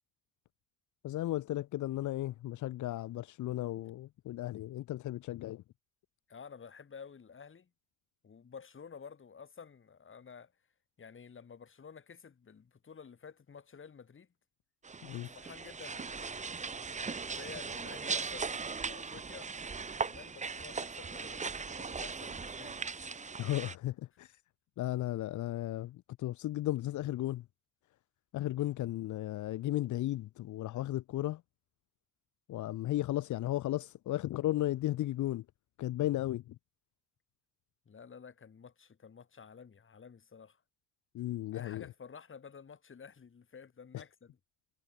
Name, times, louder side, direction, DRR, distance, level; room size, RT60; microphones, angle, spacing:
voice 1, 1.0-5.6 15.0-15.3 23.4-24.4 24.8-27.4 28.3-31.4 32.5-35.4 35.8-36.5 41.1-41.8, left 15 dB, 75° left, 1.0 m, -35 dB
voice 2, 6.3-7.7 8.2-10.5 11.0-14.3 15.1-19.5 20.0-22.8 37.9-40.6 41.5-44.4, left 6 dB, 40° left, 7.9 m, -52 dB
sound 1, 14.8-23.8, right 5 dB, 25° right, 1.0 m, -39 dB
cardioid pair, 90°, 30 cm